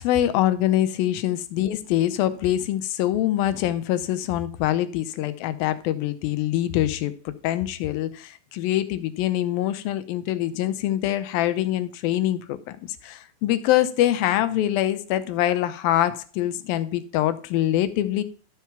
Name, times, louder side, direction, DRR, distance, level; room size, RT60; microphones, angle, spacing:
voice 1, 0.0-18.2, left 13 dB, 80° left, 2.5 m, -24 dB
12.5 x 4.6 x 5.8 m
omnidirectional pair, 4.2 m